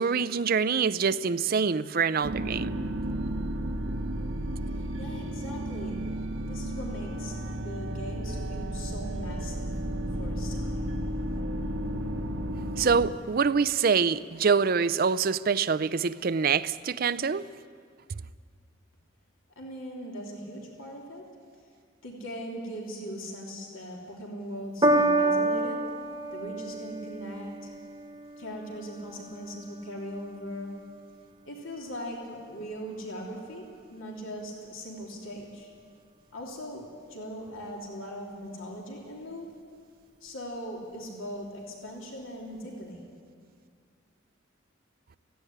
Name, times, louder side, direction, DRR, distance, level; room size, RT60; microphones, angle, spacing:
voice 1, 0.0-2.7 12.8-17.5, right 5 dB, 45° right, 0.5 m, -25 dB
sound 1, 2.2-13.1, right 1 dB, 75° right, 1.2 m, -33 dB
voice 2, 4.7-6.0 6.4-7.4 7.6-9.7 10.2-10.9 19.5-21.3 22.0-25.8 26.3-27.7 28.4-30.7 31.4-35.7 36.3-39.5 40.2-43.1, equal, 85° left, 3.3 m, -40 dB
Piano, 24.8-31.4 32.2-32.3, right 2 dB, 20° right, 1.3 m, -30 dB
16.5 x 16.0 x 9.9 m
head